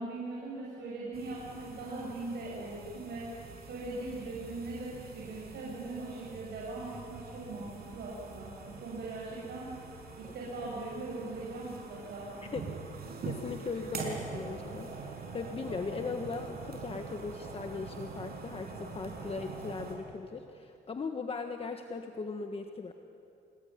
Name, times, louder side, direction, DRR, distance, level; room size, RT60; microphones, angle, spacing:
voice 1, 0.0-9.7 10.2-12.3, right 2 dB, 80° right, -5 dB, 6.9 m, -40 dB
sound 1, 1.1-19.9, right 4 dB, 65° right, 5.9 m, -44 dB
voice 2, 13.2-22.9, left 4 dB, 35° left, 5 dB, 1.5 m, -38 dB
28.0 x 19.5 x 9.7 m, 2.6 s
cardioid pair, 110°, 17 cm